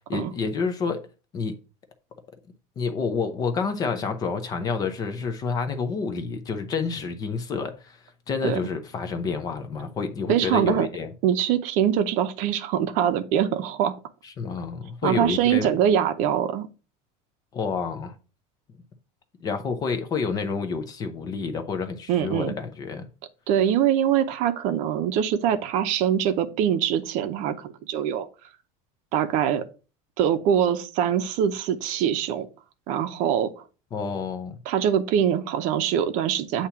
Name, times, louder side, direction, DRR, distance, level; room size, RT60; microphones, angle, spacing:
voice 1, 0.1-1.0 1.3-1.5 2.8-11.1 14.2-15.7 17.5-18.1 19.4-23.1 33.9-34.6, left 5 dB, 20° left, 0.5 m, -29 dB
voice 2, 10.3-10.9 11.2-13.9 15.0-16.7 22.1-22.5 23.5-28.3 29.1-29.6 30.2-32.5 32.9-33.6 34.7-36.7, right 9 dB, 45° right, 0.7 m, -23 dB
8.3 x 2.9 x 5.7 m
cardioid pair, 180°, 17 cm